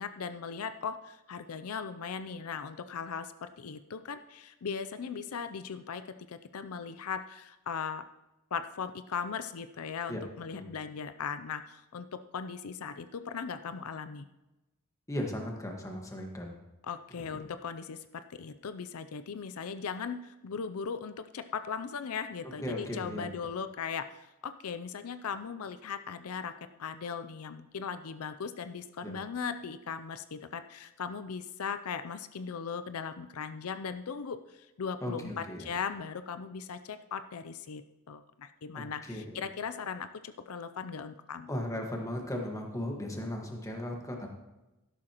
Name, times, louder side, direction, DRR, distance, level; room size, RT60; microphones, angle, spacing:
voice 1, 0.0-6.0 6.3-8.0 8.5-12.1 12.3-14.3 16.8-26.5 26.8-41.5, left 6 dB, 85° left, 11 dB, 0.5 m, -38 dB
voice 2, 15.1-16.6 17.3-17.4 22.6-23.3 29.0-29.1 35.0-35.7 38.7-39.4 41.5-44.3, left 1 dB, 15° left, 1 dB, 1.6 m, -37 dB
12.5 x 11.5 x 3.0 m, 0.99 s
head